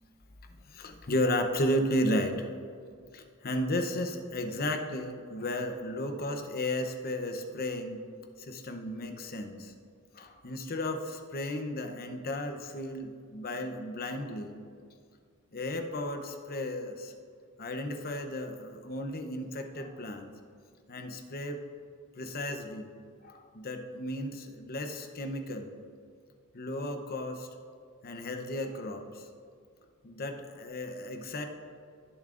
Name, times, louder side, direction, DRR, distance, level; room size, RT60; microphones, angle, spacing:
voice 1, 0.7-2.5 3.1-8.0 8.4-9.7 10.1-14.6 15.5-17.1 17.6-20.3 20.9-21.6 22.2-22.9 23.2-25.7 26.5-27.5 28.0-29.3 30.0-31.4, left 1 dB, 45° left, 6 dB, 0.8 m, -34 dB
20.0 x 7.1 x 2.5 m, 2.3 s
head